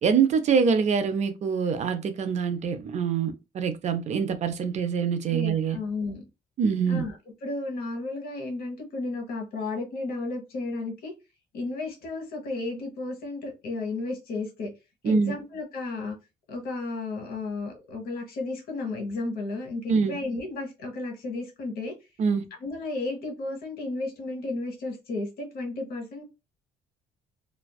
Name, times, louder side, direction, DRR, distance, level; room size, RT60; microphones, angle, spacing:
voice 1, 0.0-5.8 6.6-7.0 15.0-15.3 19.9-20.2 22.2-22.5, right 6 dB, 45° right, 0.4 m, -25 dB
voice 2, 5.3-6.2 6.9-11.1 11.5-14.7 15.0-16.2 16.5-21.9 22.6-26.2, left 3 dB, 65° left, 1.0 m, -33 dB
2.4 x 2.2 x 2.3 m
cardioid pair, 110°, 17 cm